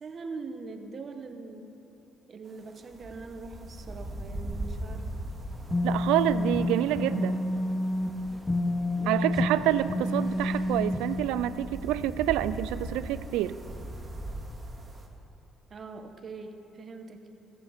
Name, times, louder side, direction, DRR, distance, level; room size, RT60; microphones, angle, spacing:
voice 1, 0.0-1.7 2.3-5.1 9.0-9.4 15.7-17.2, right 4 dB, 45° right, 6 dB, 1.0 m, -42 dB
sound 1, 2.5-15.1, right 1 dB, 30° right, 2.0 m, -41 dB
sound 2, 5.5-11.2, left 1 dB, 15° left, 1.0 m, -29 dB
voice 2, 5.8-7.4 9.1-13.6, right 13 dB, 85° right, 15 dB, 0.3 m, -27 dB
14.5 x 8.1 x 5.1 m, 3.0 s
supercardioid pair, 70°, 0 cm